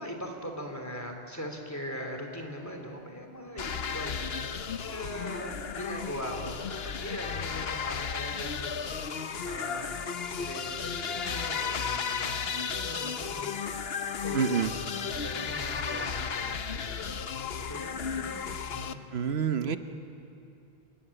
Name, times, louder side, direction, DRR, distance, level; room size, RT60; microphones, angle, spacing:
voice 1, 0.0-8.9 9.4-10.0 10.3-13.6 14.2-14.6 14.9-17.2 17.5-19.0, equal, 15° left, 2 dB, 3.2 m, -40 dB
sound 1, 3.6-18.9, left 6 dB, 75° left, 1.1 m, -34 dB
voice 2, 14.3-14.7 19.1-19.8, right 7 dB, 90° right, 9 dB, 1.3 m, -27 dB
28.0 x 20.5 x 8.9 m, 2.8 s
omnidirectional pair, 1.0 m